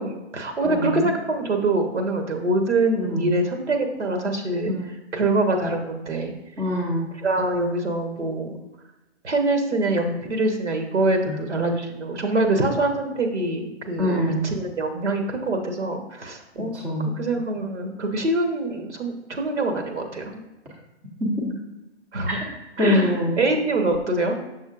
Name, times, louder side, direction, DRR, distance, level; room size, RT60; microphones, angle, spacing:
voice 1, 0.0-4.7 5.1-6.3 7.2-8.6 9.2-16.8 17.1-20.4 22.1-22.3 22.8-24.4, right 2 dB, 85° right, 4 dB, 1.2 m, -24 dB
voice 2, 0.6-1.1 2.9-3.3 4.7-4.9 6.6-7.1 11.3-11.4 14.0-14.4 16.7-17.1 21.2-21.5 22.3-22.4 22.8-23.4, left 1 dB, 5° right, -3 dB, 0.4 m, -24 dB
6.8 x 6.3 x 2.5 m, 1.0 s
hypercardioid pair, 140°, 34 cm